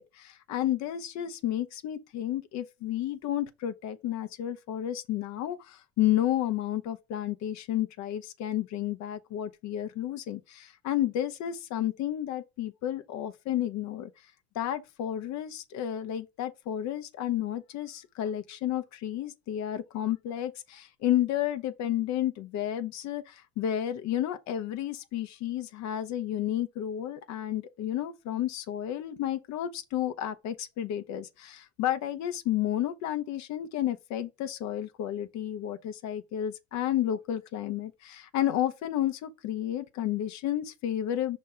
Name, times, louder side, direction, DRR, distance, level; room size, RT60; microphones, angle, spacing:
voice 1, 0.0-14.1 14.5-41.4, left 12 dB, 55° left, 1.0 m, -31 dB
5.5 x 3.1 x 5.5 m
supercardioid pair, 95°, 33 cm